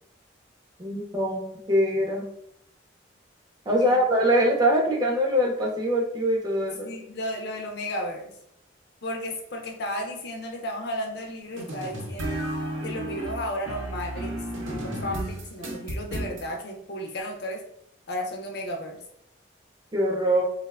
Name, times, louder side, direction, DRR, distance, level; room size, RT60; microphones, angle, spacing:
voice 1, 0.8-2.3 3.7-6.9 19.9-20.4, equal, 20° right, -1 dB, 0.4 m, -23 dB
voice 2, 6.8-8.3 9.0-12.4 12.8-17.6 18.1-19.0, left 1 dB, 55° left, 2 dB, 0.4 m, -34 dB
sound 1, 11.6-16.4, right 1 dB, 80° right, 0.6 m, -33 dB
2.9 x 2.0 x 2.3 m, 0.73 s
head